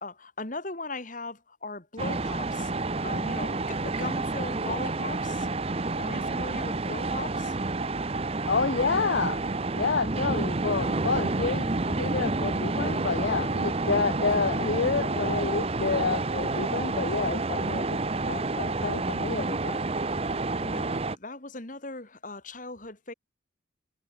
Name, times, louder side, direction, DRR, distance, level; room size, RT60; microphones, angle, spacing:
voice 1, 0.0-2.7 3.0-5.5 6.0-7.6 20.6-23.1, left 3 dB, 40° left, 2.4 m, -38 dB
sound 1, 2.0-21.2, right 3 dB, 30° right, 0.8 m, -29 dB
voice 2, 8.5-9.4 9.7-18.0 18.3-19.8, left 4 dB, 60° left, 0.6 m, -29 dB
head